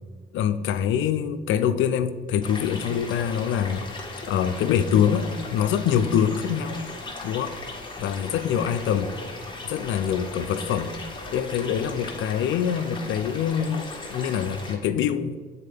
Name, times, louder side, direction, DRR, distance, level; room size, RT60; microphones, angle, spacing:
voice 1, 0.3-3.8 4.3-6.8 7.2-7.6 8.0-9.1 9.6-10.9 11.3-15.4, left 8 dB, 80° left, 11 dB, 0.5 m, -24 dB
sound 1, 2.4-14.7, left 2 dB, 25° left, 1.3 m, -38 dB
7.5 x 4.1 x 3.4 m, 1.5 s
cardioid pair, 90°, 20 cm